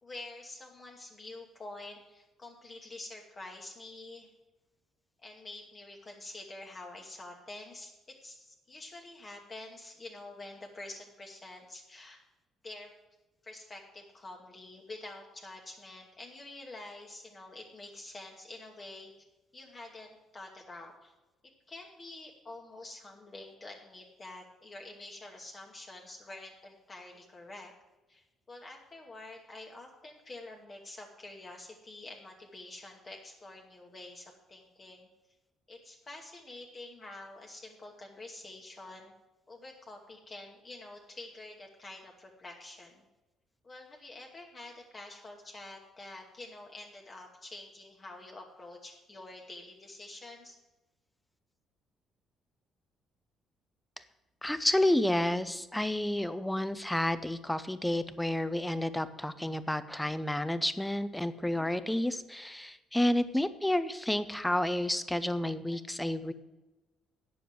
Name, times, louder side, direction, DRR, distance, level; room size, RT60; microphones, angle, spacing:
voice 1, 0.0-4.3 5.2-12.2 12.6-12.9 13.4-19.1 19.5-21.1 21.4-27.7 28.1-35.1 35.7-39.1 39.5-43.0 43.6-50.6, left 2 dB, 25° left, 0 dB, 1.2 m, -47 dB
voice 2, 54.4-66.3, left 1 dB, 5° left, 13 dB, 0.6 m, -30 dB
9.3 x 6.9 x 7.7 m, 1.1 s
cardioid pair, 145°, 0 cm